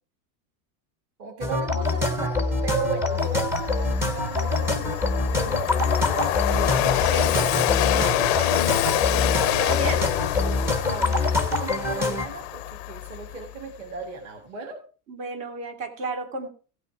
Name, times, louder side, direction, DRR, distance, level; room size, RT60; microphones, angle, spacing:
voice 1, 1.2-6.5 6.7-9.1 10.8-14.8, right 4 dB, 35° right, 1 dB, 2.0 m, -36 dB
sound 1, 1.4-12.3, left 3 dB, 5° right, 0.5 m, -25 dB
Train, 2.7-2.8 3.2-13.6, left 17 dB, 45° left, 0.4 m, -27 dB
voice 2, 6.5-7.5 9.1-10.1 15.1-16.5, right 2 dB, 55° right, 5 dB, 3.1 m, -33 dB
16.5 x 5.6 x 4.7 m, 0.37 s
supercardioid pair, 175°, 46 cm